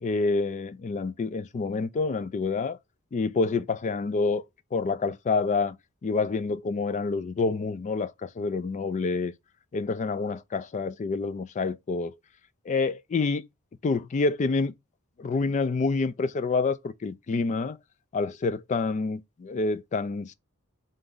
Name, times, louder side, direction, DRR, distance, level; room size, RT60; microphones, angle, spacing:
voice 1, 0.0-2.8 3.1-4.4 4.7-5.8 6.0-9.3 9.7-12.2 12.7-13.4 13.8-14.7 15.2-17.8 18.1-20.3, left 4 dB, 35° left, 0.3 m, -27 dB
3.8 x 2.5 x 3.7 m
head